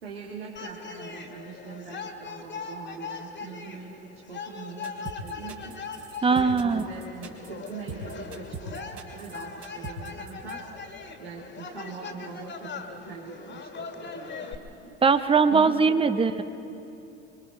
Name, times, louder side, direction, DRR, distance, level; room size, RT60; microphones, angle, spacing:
voice 1, 0.0-5.8 6.3-10.8 11.2-15.0 15.5-16.3, right 5 dB, 80° right, -4 dB, 2.4 m, -42 dB
sound 1, 0.6-14.6, left 5 dB, 35° left, 2.1 m, -40 dB
sound 2, 4.8-10.5, right 6 dB, 45° right, 3.5 m, -40 dB
voice 2, 6.2-6.8 15.0-16.4, right 5 dB, 15° right, 11 dB, 0.9 m, -21 dB
25.5 x 23.5 x 4.4 m, 2.8 s
hypercardioid pair, 75°, 31 cm